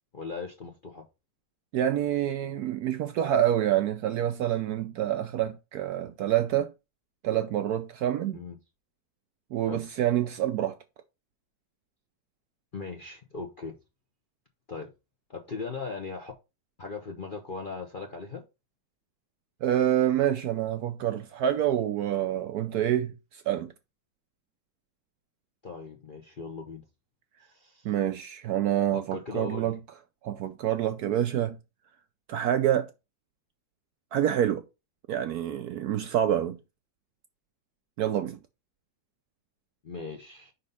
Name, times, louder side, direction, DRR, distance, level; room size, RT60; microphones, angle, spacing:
voice 1, 0.1-1.0 8.3-8.6 9.6-9.8 12.7-13.8 14.7-14.9 15.3-16.3 16.8-18.4 25.6-26.8 27.4-27.9 28.9-29.8 39.8-40.5, left 4 dB, 45° left, 0.7 m, -38 dB
voice 2, 1.7-6.7 7.2-8.4 9.5-10.8 19.6-23.7 27.8-29.8 30.2-31.6 32.3-32.9 34.1-34.6 35.1-36.6 38.0-38.4, right 11 dB, 70° right, 0.9 m, -27 dB
5.4 x 4.1 x 5.3 m
omnidirectional pair, 2.0 m